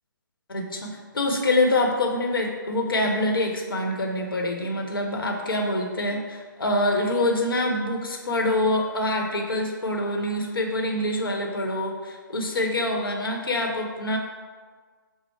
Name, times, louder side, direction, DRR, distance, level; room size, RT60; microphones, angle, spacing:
voice 1, 0.5-14.2, left 1 dB, 85° left, 1 dB, 0.9 m, -25 dB
5.6 x 2.0 x 4.5 m, 1.5 s
hypercardioid pair, 150°, 11 cm